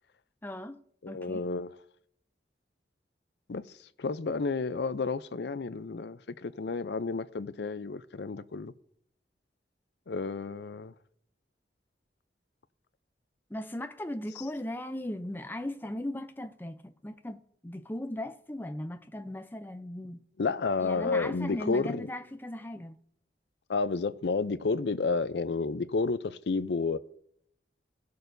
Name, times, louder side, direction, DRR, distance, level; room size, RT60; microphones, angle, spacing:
voice 1, 0.4-1.5 13.5-20.2 20.8-23.0, left 1 dB, 10° left, 0.5 m, -38 dB
voice 2, 1.0-1.7 3.5-3.6 4.0-8.7 10.1-10.9 20.4-22.1 23.7-27.0, left 4 dB, 70° left, 0.5 m, -31 dB
18.0 x 6.6 x 2.6 m
head